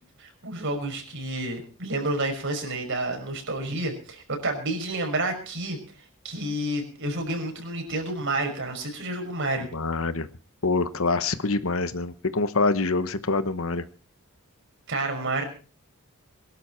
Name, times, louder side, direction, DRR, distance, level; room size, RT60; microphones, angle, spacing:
voice 1, 0.2-5.8 6.2-9.7 14.9-15.4, right 2 dB, 60° right, 4 dB, 5.7 m, -29 dB
voice 2, 9.7-10.3 10.6-13.8, left 3 dB, 70° left, 12 dB, 1.2 m, -25 dB
22.5 x 12.0 x 4.5 m, 0.37 s
head